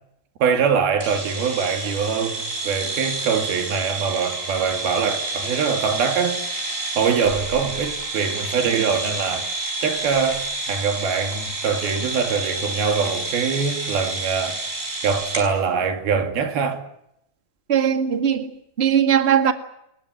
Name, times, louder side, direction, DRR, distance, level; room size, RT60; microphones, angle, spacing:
voice 1, 0.4-6.6 7.0-9.5 9.8-14.7 15.0-16.8, right 6 dB, 75° right, 4.3 m, -23 dB
sound 1, 1.0-15.5, right 2 dB, 20° right, 5.9 m, -29 dB
voice 2, 17.7-18.5 18.8-19.5, right 8 dB, 40° right, 0.9 m, -19 dB
29.0 x 15.0 x 9.9 m
omnidirectional pair, 4.4 m